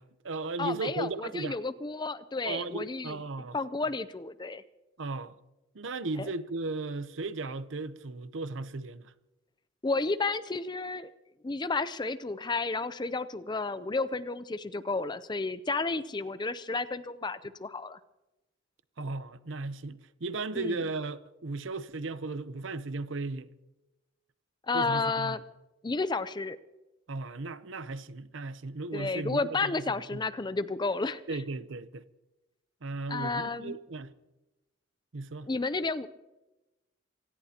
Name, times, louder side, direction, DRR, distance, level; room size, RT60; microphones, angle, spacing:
voice 1, 0.0-1.6 2.5-3.6 5.0-5.4 5.7-9.1 19.0-23.5 24.7-25.4 27.1-30.2 31.3-32.0 32.8-34.1 35.1-35.5, right 3 dB, 65° right, 0.7 m, -36 dB
voice 2, 0.6-3.2 3.5-4.6 6.2-6.3 9.8-11.1 11.4-18.0 20.6-20.8 24.7-25.4 25.8-26.6 28.9-31.2 33.1-33.7 35.4-36.1, left 3 dB, 20° left, 0.5 m, -32 dB
26.5 x 17.0 x 2.9 m
head